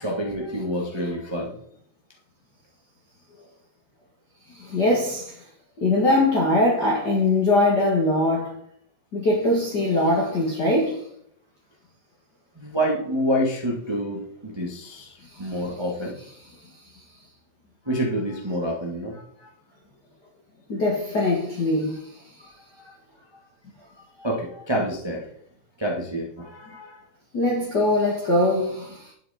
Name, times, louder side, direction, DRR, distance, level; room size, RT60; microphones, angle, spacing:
voice 1, 0.0-1.5 12.6-16.1 17.8-19.2 24.2-25.3 25.8-27.0, equal, 20° right, 0.7 m, -27 dB
voice 2, 4.5-5.4 5.8-8.5 9.1-11.0 15.3-15.6 20.7-22.1 27.3-29.1, left 2 dB, 35° left, 2.2 m, -22 dB
11.5 x 7.3 x 4.3 m
omnidirectional pair, 3.8 m